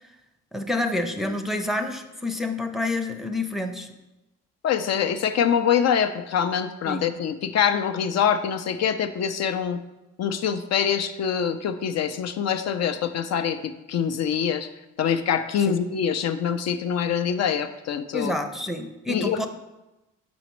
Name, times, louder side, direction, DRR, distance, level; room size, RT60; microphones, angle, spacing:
voice 1, 0.5-3.9 6.9-7.1 15.6-15.8 18.1-19.5, left 2 dB, ahead, 5 dB, 0.5 m, -28 dB
voice 2, 4.6-9.8 10.2-14.7 15.0-18.4 19.1-19.5, left 8 dB, 60° left, 9 dB, 0.4 m, -24 dB
7.0 x 5.0 x 3.1 m, 0.99 s
cardioid pair, 90°, 30 cm